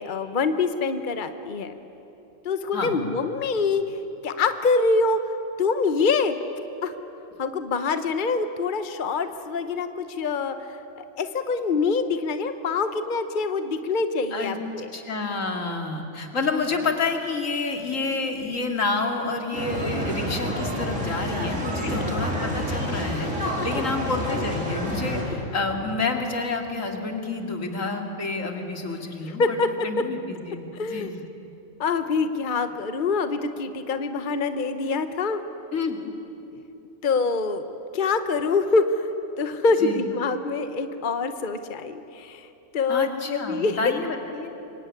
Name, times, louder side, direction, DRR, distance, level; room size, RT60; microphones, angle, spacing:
voice 1, 0.0-1.7 2.4-3.8 4.2-5.2 5.6-6.3 6.8-6.9 7.4-14.9 21.8-22.0 29.3-29.9 30.7-31.1 31.8-35.4 37.0-39.1 39.4-42.5 42.7-43.8, left 4 dB, 40° left, 9 dB, 1.1 m, -25 dB
voice 2, 2.7-3.1 14.3-14.6 14.9-29.6 29.8-31.2 35.7-36.0 39.8-40.0 42.9-44.5, left 3 dB, 85° left, 3 dB, 2.8 m, -29 dB
sound 1, 19.5-25.2, equal, 70° right, 5.1 m, -28 dB
26.5 x 23.5 x 9.7 m, 3.0 s
omnidirectional pair, 1.3 m